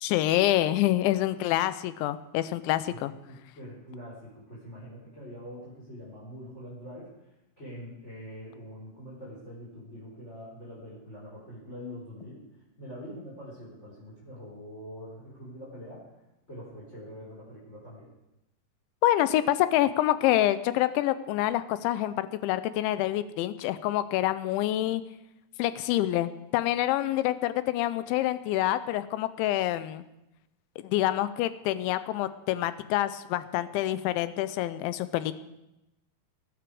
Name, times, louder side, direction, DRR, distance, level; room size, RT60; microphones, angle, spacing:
voice 1, 0.0-3.1 19.0-25.0 25.6-30.0 30.8-35.3, left 14 dB, 85° left, 14 dB, 3.0 m, -27 dB
voice 2, 3.3-7.1 7.6-12.4 12.8-16.0 16.5-18.1, equal, 15° left, -6 dB, 4.0 m, -44 dB
20.0 x 12.0 x 4.9 m, 0.92 s
omnidirectional pair, 5.4 m